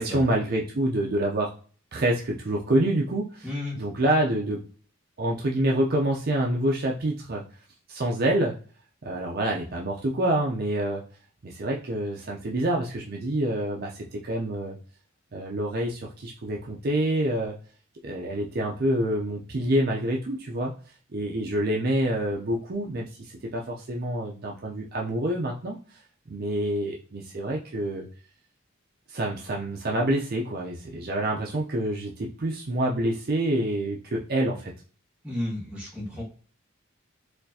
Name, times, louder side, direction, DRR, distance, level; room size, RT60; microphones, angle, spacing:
voice 1, 0.0-1.5 1.9-3.5 3.8-4.6 5.2-7.4 7.9-8.6 9.0-11.0 11.4-14.8 15.3-17.5 18.0-20.7 21.1-25.8 26.3-28.1 29.1-34.7, right 1 dB, 45° right, -1 dB, 0.5 m, -27 dB
voice 2, 3.4-3.8 35.2-36.2, left 1 dB, 5° right, -5 dB, 1.2 m, -32 dB
4.2 x 2.4 x 2.7 m, 0.41 s
head